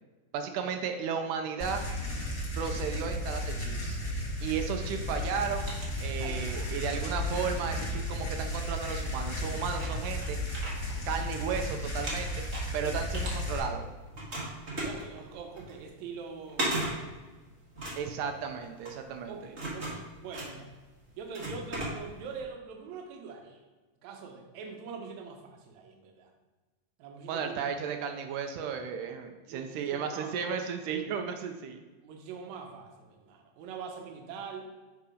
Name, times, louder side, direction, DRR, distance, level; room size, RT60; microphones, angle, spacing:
voice 1, 0.3-1.8 2.6-4.0 4.4-5.7 6.0-10.4 11.1-12.4 12.7-13.8 18.0-19.4 27.3-31.8, right 6 dB, 90° right, 5 dB, 2.1 m, -34 dB
sound 1, 1.6-13.6, left 1 dB, 30° left, 1.9 m, -34 dB
sound 2, 5.5-6.6 7.0-8.7 9.3-9.4 9.7-11.6 11.9-13.8 14.1-22.4, right 1 dB, 50° right, 0.8 m, -38 dB
voice 2, 6.2-6.7 12.8-13.0 14.8-17.1 19.3-20.7 21.2-23.6 24.0-26.3 27.0-27.6 29.5-30.6 32.0-34.7, right 5 dB, 75° right, 3 dB, 2.0 m, -43 dB
6.7 x 3.7 x 4.9 m, 1.3 s
omnidirectional pair, 3.5 m